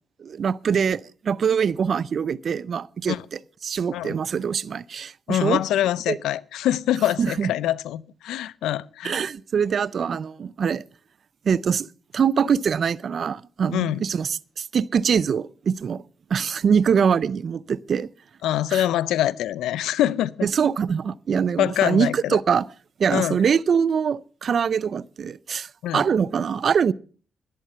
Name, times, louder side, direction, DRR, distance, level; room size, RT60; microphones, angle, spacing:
voice 1, 0.2-5.6 6.1-6.2 7.2-7.5 9.0-10.8 11.4-11.9 12.1-16.0 16.3-18.1 18.7-18.9 20.4-22.7 23.0-26.9, right 7 dB, 60° right, 0.5 m, -23 dB
voice 2, 5.3-9.1 13.7-14.0 18.4-20.5 21.6-22.4 23.1-23.4 25.8-26.0, left 12 dB, 85° left, 0.5 m, -24 dB
12.0 x 11.0 x 5.7 m
supercardioid pair, 55°, 0 cm